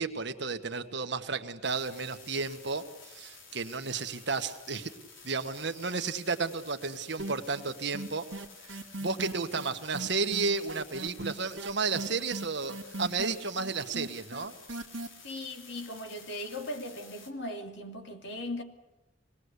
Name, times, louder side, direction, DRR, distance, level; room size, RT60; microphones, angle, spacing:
voice 1, 0.0-4.9 5.2-8.2 8.6-14.5, right 4 dB, 60° right, 1.6 m, -33 dB
sound 1, 1.6-17.3, left 4 dB, 80° left, 3.6 m, -52 dB
sound 2, 7.2-7.7 7.9-15.1, right 2 dB, 85° right, 1.9 m, -38 dB
voice 2, 15.2-18.6, left 1 dB, 65° left, 2.7 m, -38 dB
26.0 x 19.5 x 8.4 m
head